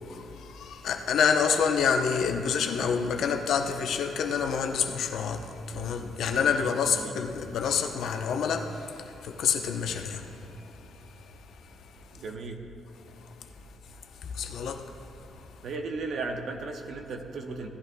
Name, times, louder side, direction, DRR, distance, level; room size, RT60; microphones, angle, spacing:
voice 1, 0.1-10.3 14.2-14.9, left 6 dB, 75° left, 0.9 m, -28 dB
voice 2, 6.3-7.1 12.1-12.6 15.6-17.7, right 3 dB, 65° right, 1.1 m, -36 dB
17.0 x 11.0 x 2.3 m
cardioid pair, 90°, 0 cm